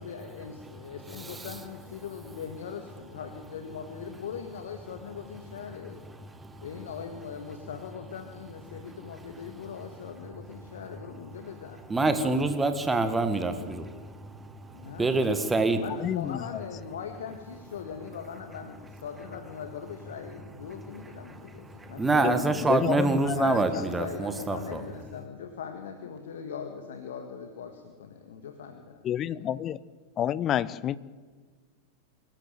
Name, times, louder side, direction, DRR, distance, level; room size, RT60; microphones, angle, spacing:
voice 1, 0.0-6.0 6.6-11.8 12.2-12.4 14.7-22.6 23.3-29.5, left 7 dB, 60° left, 7 dB, 1.8 m, -41 dB
voice 2, 1.2-1.5 6.3-6.7 11.9-15.8 21.3-24.8, right 3 dB, 10° right, 9 dB, 1.9 m, -27 dB
voice 3, 16.0-16.4 22.7-23.6 29.0-29.8 30.2-31.0, left 10 dB, 30° left, 20 dB, 0.7 m, -28 dB
24.0 x 13.5 x 9.3 m, 1.5 s
figure-of-eight pair, 90°, 0 cm